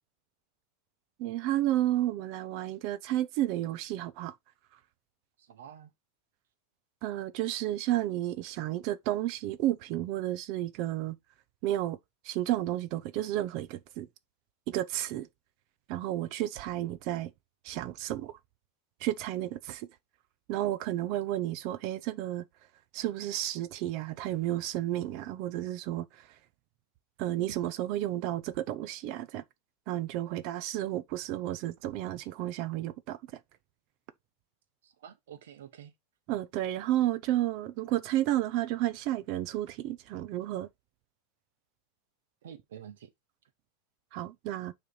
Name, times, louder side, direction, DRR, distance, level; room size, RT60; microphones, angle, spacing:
voice 1, 1.2-4.3 7.0-11.2 11.6-12.0 12.2-14.1 14.7-15.3 15.9-17.3 17.6-18.3 19.0-19.9 20.5-22.4 22.9-26.1 27.2-29.4 29.9-33.2 36.3-40.7 44.1-44.7, right 14 dB, 50° right, 0.8 m, -32 dB
voice 2, 5.4-5.9 34.8-35.9 42.4-43.1, right 9 dB, 85° right, 1.2 m, -48 dB
6.7 x 3.4 x 5.5 m
supercardioid pair, 130°, 0 cm